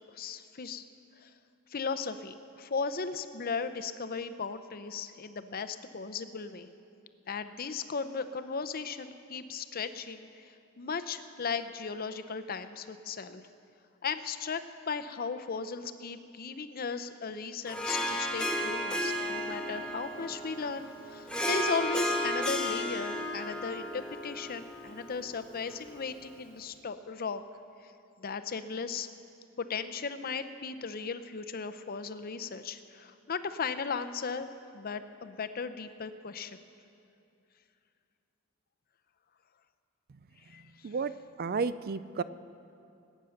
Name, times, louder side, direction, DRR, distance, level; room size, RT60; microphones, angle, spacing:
voice 1, 0.1-0.8 1.2-1.3 1.7-6.7 7.3-13.4 14.0-27.4 28.2-29.1 29.6-34.5 34.7-36.6 40.5-40.9, left 5 dB, 45° left, 11 dB, 0.6 m, -36 dB
Harp, 17.7-26.3, left 1 dB, 5° left, 1.1 m, -34 dB
voice 2, 41.4-42.2, right 5 dB, 45° right, 14 dB, 0.4 m, -31 dB
20.0 x 9.2 x 6.5 m, 2.6 s
head